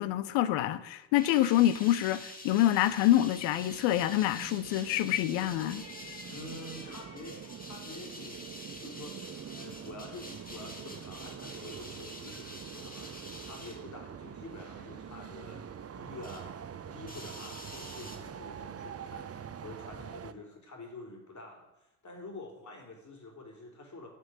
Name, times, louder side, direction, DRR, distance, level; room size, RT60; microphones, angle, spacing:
voice 1, 0.0-5.8, left 13 dB, 65° left, 0.9 m, -26 dB
sound 1, 1.1-16.5 16.8-18.2, left 1 dB, 15° left, 2.6 m, -48 dB
sound 2, 2.7-20.3, right 8 dB, 30° right, 0.8 m, -45 dB
voice 2, 6.3-15.6 15.9-16.5 16.8-21.7 22.0-24.1, left 2 dB, 35° left, 4.0 m, -48 dB
8.1 x 7.8 x 8.7 m
figure-of-eight pair, 45°, 49 cm